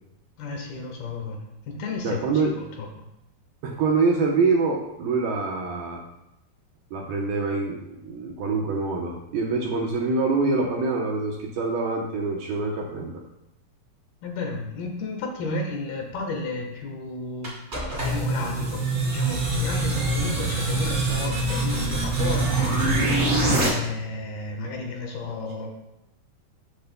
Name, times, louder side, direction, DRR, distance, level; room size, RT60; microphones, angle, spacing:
voice 1, 0.4-1.4 1.7-2.5 2.8-2.9 14.2-25.7, left 3 dB, 65° left, 1 dB, 2.9 m, -33 dB
voice 2, 2.0-2.5 3.6-6.0 6.9-13.2, right 4 dB, 75° right, -1 dB, 2.3 m, -25 dB
sound 1, 17.4-23.7, right 2 dB, 20° right, 2.3 m, -24 dB
13.5 x 8.2 x 2.2 m, 0.87 s
omnidirectional pair, 5.0 m